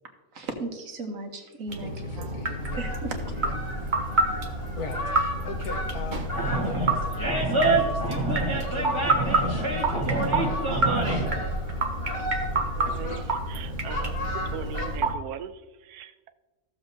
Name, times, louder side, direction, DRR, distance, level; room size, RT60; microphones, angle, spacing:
voice 1, 0.3-2.4 2.7-3.5, right 2 dB, 65° right, 4 dB, 1.5 m, -36 dB
sound 1, 1.7-15.2, right 2 dB, 35° right, 1.0 m, -29 dB
voice 2, 1.8-2.9 3.3-3.6 4.8-11.5, left 3 dB, 80° left, 4 dB, 1.6 m, -41 dB
Fowl, 2.6-15.0, left 1 dB, 40° left, 2.0 m, -34 dB
Animal, 6.3-11.3, right 2 dB, 20° right, 1.4 m, -26 dB
voice 3, 12.8-16.3, right 9 dB, 90° right, 11 dB, 1.1 m, -40 dB
14.5 x 7.1 x 2.7 m, 1.2 s
omnidirectional pair, 1.6 m